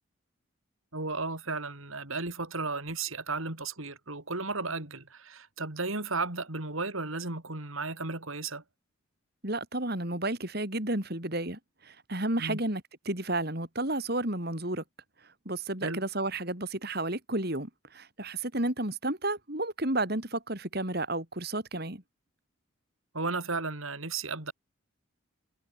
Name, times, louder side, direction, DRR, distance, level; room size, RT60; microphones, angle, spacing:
voice 1, 0.9-8.6 12.4-12.6 15.8-16.0 23.1-24.5, right 3 dB, 75° right, 3.7 m, -34 dB
voice 2, 9.4-14.8 15.5-22.0, right 2 dB, 45° right, 4.2 m, -32 dB
head